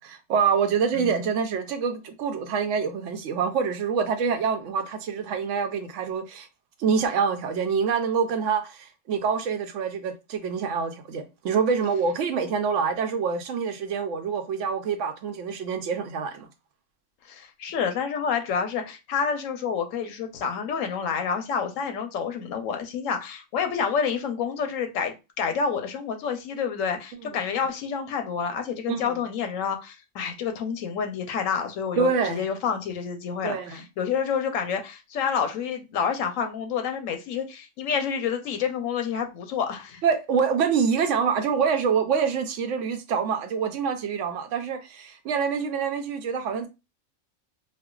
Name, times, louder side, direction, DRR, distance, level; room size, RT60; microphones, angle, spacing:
voice 1, 0.0-6.5 6.8-16.5 27.2-27.3 28.9-29.2 32.0-32.4 33.4-33.9 40.0-46.7, right 6 dB, 70° right, 0.9 m, -26 dB
voice 2, 0.9-1.3 17.3-40.0, left 6 dB, 90° left, 1.0 m, -28 dB
4.4 x 2.1 x 2.3 m
omnidirectional pair, 1.3 m